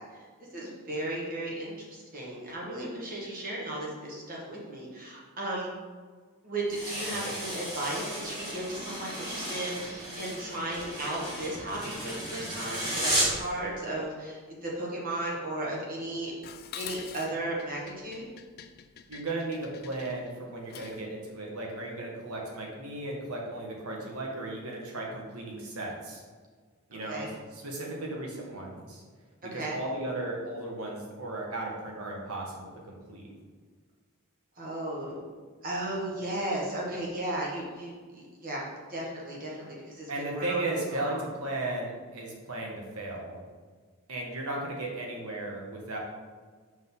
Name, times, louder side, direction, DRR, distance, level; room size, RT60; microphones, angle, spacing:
voice 1, 0.0-5.7 6.4-16.3 16.8-18.2 26.9-27.3 29.5-29.8 34.6-35.2 35.6-38.6 38.9-40.6 40.9-41.2, right 1 dB, 40° right, -4 dB, 1.4 m, -35 dB
sound 1, 6.7-13.5, right 1 dB, 20° right, 1.9 m, -34 dB
Dishes pots and pans, 16.4-21.1, left 9 dB, 45° left, 0.4 m, -46 dB
voice 2, 19.1-26.2 26.9-29.0 29.4-33.3 40.1-43.4 44.1-46.0, right 2 dB, 75° right, -1 dB, 1.5 m, -35 dB
5.9 x 5.1 x 3.8 m, 1.5 s
head